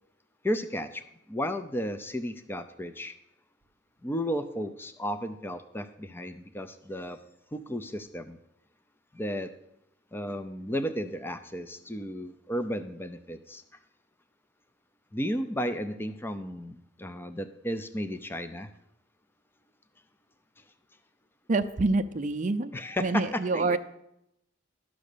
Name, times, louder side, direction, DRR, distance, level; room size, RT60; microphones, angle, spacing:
voice 1, 0.4-3.1 4.0-7.2 7.5-8.4 9.1-9.5 10.1-13.6 15.1-18.7 20.6-20.7 22.7-23.8, equal, 10° left, 10 dB, 0.4 m, -33 dB
voice 2, 21.5-22.7 23.0-23.8, right 3 dB, 40° right, 7 dB, 0.5 m, -26 dB
12.0 x 6.2 x 6.7 m, 0.82 s
head